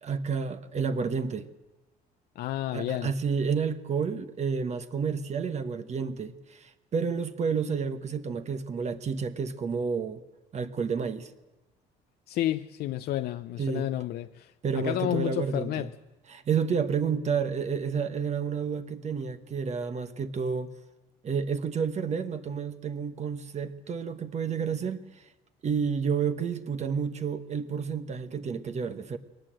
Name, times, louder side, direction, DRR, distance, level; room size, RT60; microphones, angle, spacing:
voice 1, 0.0-1.5 2.7-10.2 10.5-11.3 13.6-13.9 14.6-15.9 16.3-20.7 21.2-25.0 25.6-29.2, right 6 dB, 40° right, 1.3 m, -30 dB
voice 2, 2.4-3.1 12.3-15.9, left 13 dB, 70° left, 0.6 m, -31 dB
21.5 x 18.5 x 7.7 m
cardioid pair, 110°, 17 cm